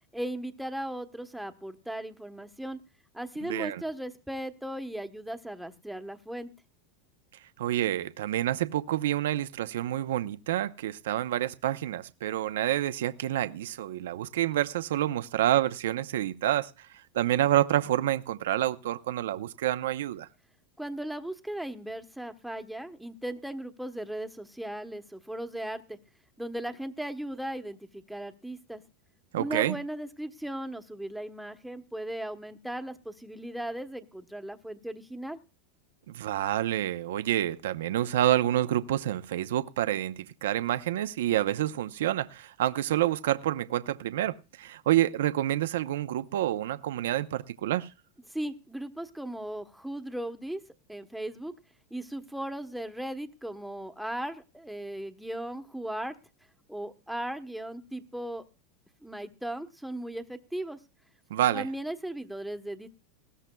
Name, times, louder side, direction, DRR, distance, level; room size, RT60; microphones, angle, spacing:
voice 1, 0.1-2.8 3.1-6.5 20.8-26.0 26.4-28.8 29.4-35.4 48.3-50.6 50.9-51.5 51.9-56.2 56.7-58.4 59.0-60.8 61.5-62.9, right 1 dB, ahead, 1.1 m, -37 dB
voice 2, 3.5-3.8 7.6-16.9 17.1-20.3 29.3-29.8 36.1-47.9 61.3-61.7, right 13 dB, 85° right, 0.7 m, -28 dB
19.5 x 15.5 x 2.3 m
supercardioid pair, 125°, 0 cm